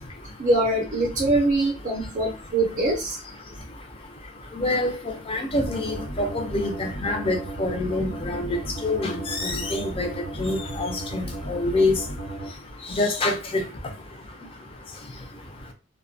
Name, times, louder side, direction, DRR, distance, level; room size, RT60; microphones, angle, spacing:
voice 1, 0.4-3.2, right 2 dB, 40° right, 0.4 m, -23 dB
voice 2, 4.6-4.9 5.3-8.5 8.8-10.1 10.4-11.2 11.5-12.0 13.0-13.6, left 2 dB, 25° left, 0.4 m, -25 dB
sound 1, 5.6-12.5, right 1 dB, 55° left, 0.9 m, -35 dB
2.6 x 2.1 x 2.5 m
head